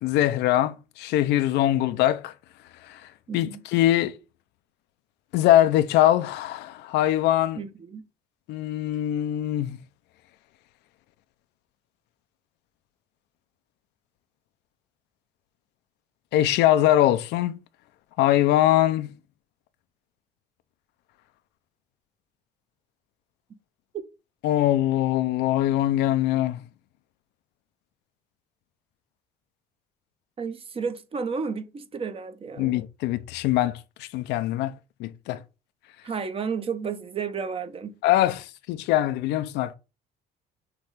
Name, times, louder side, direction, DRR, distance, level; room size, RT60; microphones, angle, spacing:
voice 1, 0.0-2.3 2.8-3.0 3.3-4.2 5.3-7.6 8.5-9.8 16.3-17.6 18.2-19.1 24.4-26.6 32.6-34.7 35.0-35.4 38.0-39.7, left 13 dB, 85° left, 0.6 m, -22 dB
voice 2, 3.3-3.6 7.5-8.0 23.9-24.0 30.4-32.7 36.0-38.0, right 5 dB, 35° right, 0.9 m, -32 dB
6.1 x 3.1 x 5.0 m
cardioid pair, 110°, 17 cm